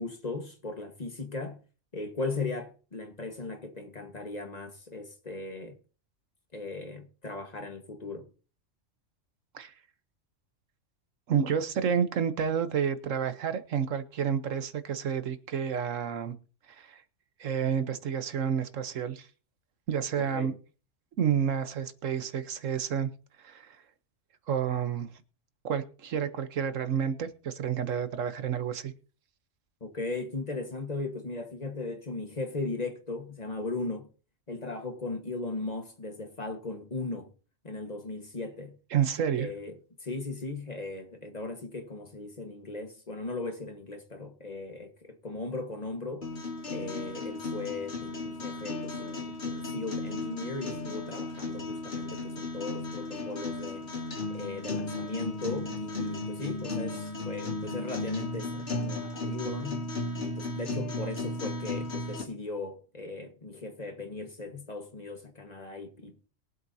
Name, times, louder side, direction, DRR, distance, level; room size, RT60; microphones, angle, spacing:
voice 1, 0.0-1.6 1.9-5.8 6.5-8.3 20.2-20.5 29.8-34.1 34.5-37.3 37.6-38.8 39.4-39.7 40.0-46.3 46.7-53.9 54.3-59.8 60.2-66.1, left 3 dB, 35° left, 1.5 m, -37 dB
voice 2, 11.3-16.3 16.7-17.0 17.4-19.3 19.9-20.5 21.2-23.1 23.4-23.8 24.5-25.1 25.6-28.9 38.9-39.5, right 8 dB, 90° right, 1.4 m, -30 dB
sound 1, 46.2-62.2, left 2 dB, 65° left, 2.7 m, -35 dB
22.0 x 8.1 x 2.7 m
omnidirectional pair, 1.3 m